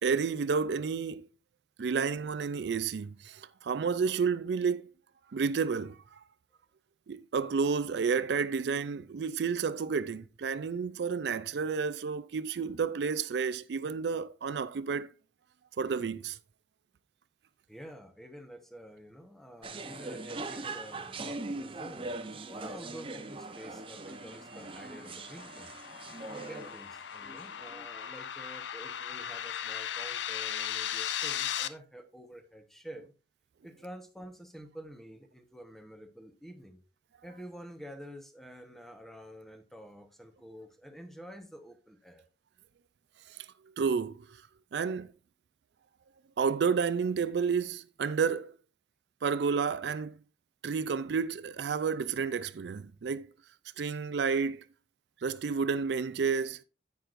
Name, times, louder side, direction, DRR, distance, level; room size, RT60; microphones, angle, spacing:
voice 1, 0.0-1.3 1.8-4.9 5.3-6.2 7.1-15.1 15.8-16.4 43.3-43.5 43.8-44.3 44.7-45.1 46.4-48.5 49.2-50.2 50.6-53.3 53.8-54.6 55.2-56.6, right 5 dB, 65° right, 0.4 m, -31 dB
voice 2, 17.7-22.1 22.5-25.7 26.3-33.1 33.6-36.8 37.2-42.2, equal, ahead, 1.0 m, -48 dB
sound 1, 19.6-27.9, right 2 dB, 30° right, 0.7 m, -41 dB
sound 2, 24.0-31.7, left 10 dB, 80° left, 0.5 m, -37 dB
10.0 x 8.3 x 2.5 m
head